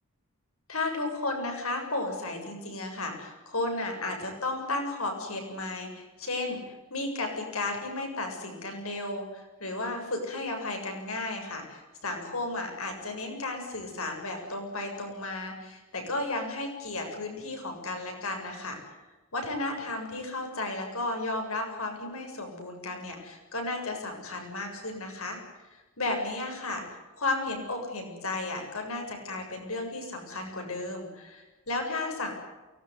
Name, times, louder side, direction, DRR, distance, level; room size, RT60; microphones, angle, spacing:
voice 1, 0.7-18.8 19.3-25.4 25.7-26.8 27.2-32.3, left 2 dB, 75° left, 3 dB, 7.7 m, -34 dB
23.5 x 20.0 x 9.7 m, 1.2 s
head